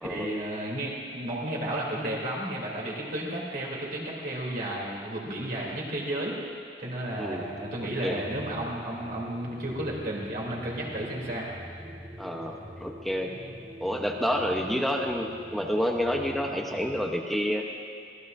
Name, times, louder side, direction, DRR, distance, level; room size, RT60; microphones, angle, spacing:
voice 1, 0.0-6.4 6.8-11.5, right 1 dB, 55° right, -4 dB, 3.2 m, -33 dB
sound 1, 7.0-17.2, equal, 30° right, 1.3 m, -45 dB
voice 2, 7.2-7.5 8.0-8.2 12.2-13.4 13.8-17.7, equal, ahead, 0 dB, 1.0 m, -29 dB
24.5 x 17.5 x 2.7 m, 2.3 s
head